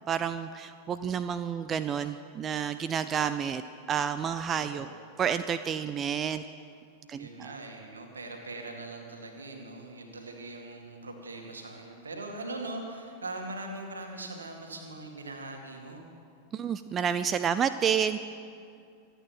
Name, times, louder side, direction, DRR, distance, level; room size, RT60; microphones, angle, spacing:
voice 1, 0.1-3.6 3.9-4.9 5.2-6.4 7.1-7.5 16.5-18.2, right 7 dB, 25° right, 12 dB, 0.4 m, -30 dB
voice 2, 4.7-5.1 7.1-16.1, right 2 dB, 75° right, 3 dB, 2.2 m, -41 dB
25.5 x 9.2 x 5.9 m, 2.4 s
figure-of-eight pair, 90°, 0 cm